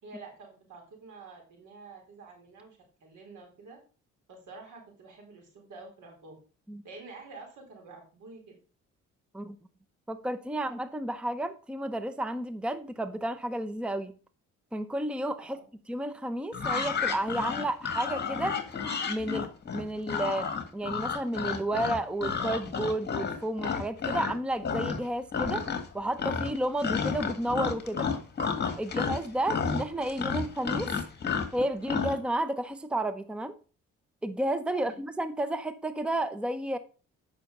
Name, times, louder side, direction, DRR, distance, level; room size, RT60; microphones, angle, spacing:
voice 1, 0.0-3.8 4.3-6.4 6.8-8.6 15.4-15.6 34.7-35.0, right 3 dB, 80° right, 4.2 m, -48 dB
voice 2, 10.1-14.1 14.7-15.6 15.9-18.6 19.1-25.7 25.9-28.1 28.8-30.9 31.5-33.5 34.2-36.8, right 1 dB, 5° right, 0.7 m, -32 dB
sound 1, 16.5-24.3 24.6-25.1 25.3-25.9 26.2-32.2, left 6 dB, 35° left, 1.9 m, -31 dB
8.6 x 5.9 x 5.2 m
cardioid pair, 90°, 30 cm